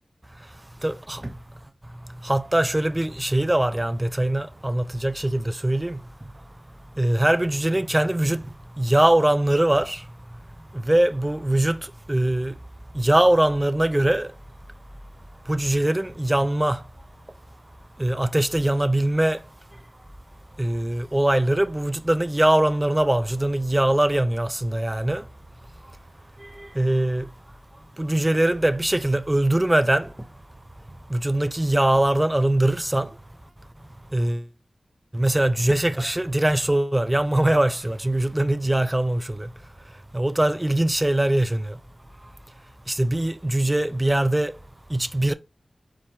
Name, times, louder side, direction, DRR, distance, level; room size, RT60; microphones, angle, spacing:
voice 1, 0.8-1.2 2.2-6.0 7.0-8.4 8.8-10.0 10.9-11.8 12.1-12.5 13.0-14.3 15.5-16.8 18.0-19.4 20.6-25.2 26.8-27.3 28.0-30.1 31.1-33.1 34.1-34.4 35.1-39.5 40.1-41.7 42.9-44.5 44.9-45.3, right 1 dB, 20° right, 0.4 m, -22 dB
4.5 x 2.4 x 3.4 m
wide cardioid pair, 60°, 0 cm